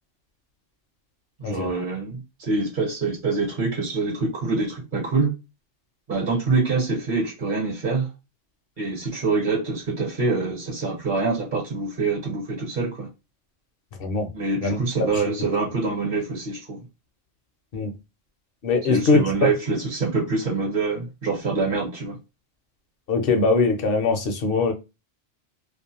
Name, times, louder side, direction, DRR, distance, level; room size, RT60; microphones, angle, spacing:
voice 1, 1.4-5.3 6.1-8.1 8.8-13.1 14.3-16.8 18.9-22.2, right 3 dB, 45° right, 1.0 m, -25 dB
voice 2, 18.6-19.5 23.1-24.7, left 3 dB, 60° left, 0.7 m, -21 dB
2.5 x 2.1 x 2.8 m
omnidirectional pair, 1.2 m